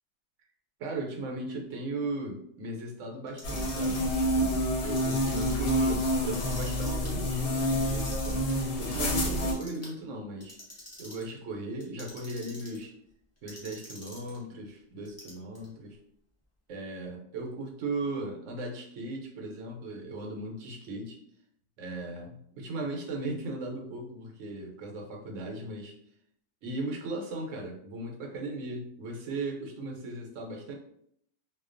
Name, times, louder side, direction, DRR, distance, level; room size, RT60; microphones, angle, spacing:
voice 1, 0.8-10.6 11.0-13.0 13.4-16.0 16.7-21.2 21.8-25.9 26.6-30.7, right 2 dB, 75° right, 1 dB, 0.9 m, -37 dB
Clock, 3.3-4.1 4.8-5.7 6.2-7.1 7.6-8.5 9.0-9.9 10.4-11.3 11.8-12.8 13.5-14.4 15.0-15.7, left 1 dB, 25° left, 0.4 m, -47 dB
sound 1, 3.4-9.5, equal, 70° left, 0.8 m, -28 dB
2.4 x 2.2 x 2.4 m, 0.69 s
omnidirectional pair, 1.3 m